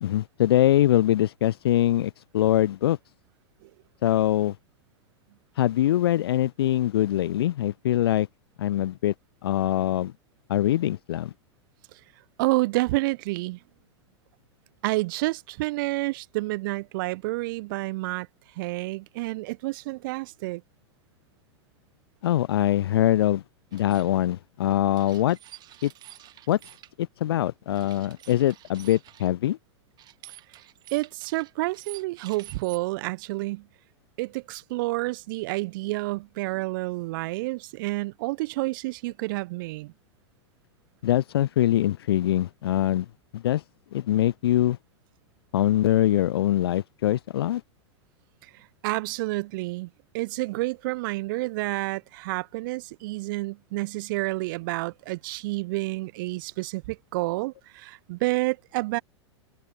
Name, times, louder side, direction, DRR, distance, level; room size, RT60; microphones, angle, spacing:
voice 1, 0.0-3.0 4.0-4.5 5.6-8.3 8.6-9.1 9.4-10.1 10.5-11.3 22.2-23.4 23.7-25.4 25.8-25.9 26.5-26.6 27.0-29.6 41.0-43.1 43.3-43.6 43.9-44.8 45.5-47.6, left 13 dB, 60° left, 0.4 m, -23 dB
voice 2, 12.4-13.6 14.8-18.3 18.6-20.6 30.9-33.6 34.2-39.9 48.8-49.9 50.1-59.0, right 21 dB, 45° right, 1.2 m, -29 dB
sound 1, 23.7-24.1 25.0-26.9 27.7-29.3 30.0-32.8, right 13 dB, 30° right, 2.4 m, -48 dB
figure-of-eight pair, 95°, 15 cm